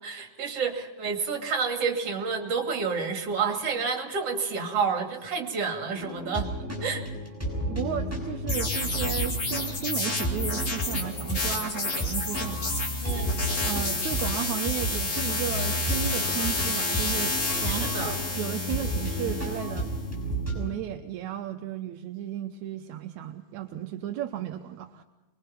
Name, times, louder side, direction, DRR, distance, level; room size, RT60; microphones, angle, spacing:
voice 1, 0.0-6.5 6.8-7.0 13.0-13.4 17.6-18.1, right 5 dB, 55° right, 4 dB, 3.4 m, -29 dB
sound 1, 5.9-20.7, equal, 5° right, 6.0 m, -32 dB
voice 2, 7.7-12.6 13.7-17.3 17.6-19.9 20.6-25.0, right 11 dB, 80° right, 6 dB, 2.2 m, -34 dB
sound 2, 8.5-19.9, left 3 dB, 25° left, 2.4 m, -30 dB
24.0 x 22.0 x 5.9 m, 1.1 s
omnidirectional pair, 3.4 m